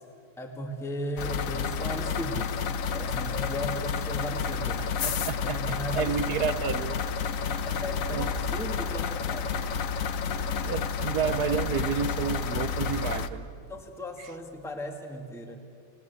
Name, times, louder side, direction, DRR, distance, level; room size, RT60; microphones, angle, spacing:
voice 1, 0.4-2.6 2.9-4.8 5.4-6.6 7.6-9.5 13.7-15.6, equal, ahead, 3 dB, 1.7 m, -36 dB
sound 1, 1.2-13.3, left 6 dB, 55° left, 1.0 m, -30 dB
voice 2, 5.0-7.0 7.5-7.7 8.1-8.3 10.6-13.5, right 8 dB, 60° right, 13 dB, 1.2 m, -30 dB
sound 2, 5.9-13.2, equal, 35° left, 3.5 m, -45 dB
29.5 x 18.5 x 8.3 m, 2.5 s
omnidirectional pair, 2.3 m